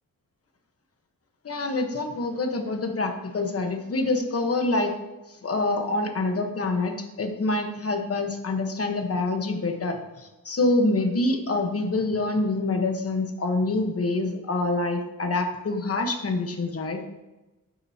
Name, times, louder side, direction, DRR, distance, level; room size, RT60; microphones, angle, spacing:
voice 1, 1.4-4.9 5.3-17.0, left 2 dB, 45° left, 4 dB, 1.1 m, -26 dB
10.5 x 9.0 x 2.8 m, 1.1 s
wide cardioid pair, 170°, 34 cm